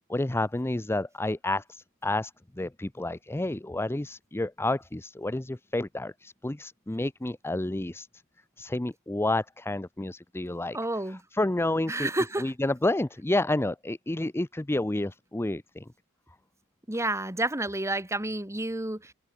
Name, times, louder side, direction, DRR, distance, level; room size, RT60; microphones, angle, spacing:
voice 1, 0.1-8.1 8.6-10.8 11.1-12.1 12.4-15.9, left 2 dB, 10° left, 0.6 m, -30 dB
voice 2, 10.7-11.2 11.9-12.5 16.9-19.1, right 2 dB, 15° right, 2.2 m, -30 dB
head